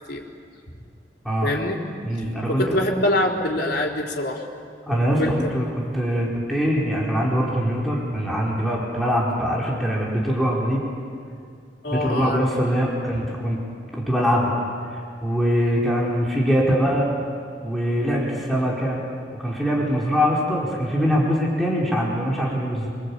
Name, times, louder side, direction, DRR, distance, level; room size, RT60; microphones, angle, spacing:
voice 1, 1.4-1.8 2.5-4.4 5.1-5.5 11.8-12.4, left 1 dB, 65° left, -1 dB, 4.1 m, -24 dB
voice 2, 2.0-2.8 4.9-10.8 11.9-13.6 13.9-14.5 14.9-17.1 17.6-19.0 19.4-22.9, equal, ahead, -4 dB, 4.5 m, -23 dB
26.0 x 24.5 x 8.7 m, 2.3 s
head